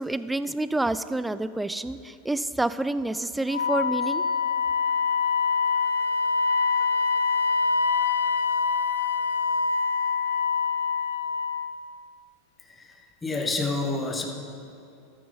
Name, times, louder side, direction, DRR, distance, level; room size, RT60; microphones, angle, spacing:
voice 1, 0.0-4.3, right 2 dB, 10° right, 14 dB, 0.4 m, -28 dB
Wind instrument woodwind instrument, 3.5-11.8, left 5 dB, 85° left, 0.4 m, -25 dB
voice 2, 13.2-14.3, left 3 dB, 15° left, 2 dB, 1.5 m, -28 dB
13.5 x 9.4 x 3.9 m, 2.6 s
hypercardioid pair, 100°, 0 cm